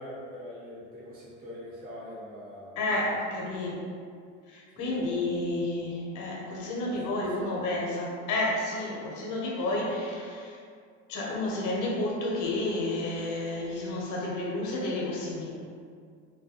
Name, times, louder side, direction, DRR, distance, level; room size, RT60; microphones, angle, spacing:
voice 1, 0.0-3.2 4.8-5.2 6.8-7.8, left 1 dB, 25° right, -9 dB, 0.8 m, -44 dB
voice 2, 2.8-3.8 4.5-10.6 11.1-15.5, left 2 dB, 60° left, -3 dB, 0.8 m, -31 dB
2.3 x 2.2 x 2.8 m, 2.2 s
hypercardioid pair, 75°, 34 cm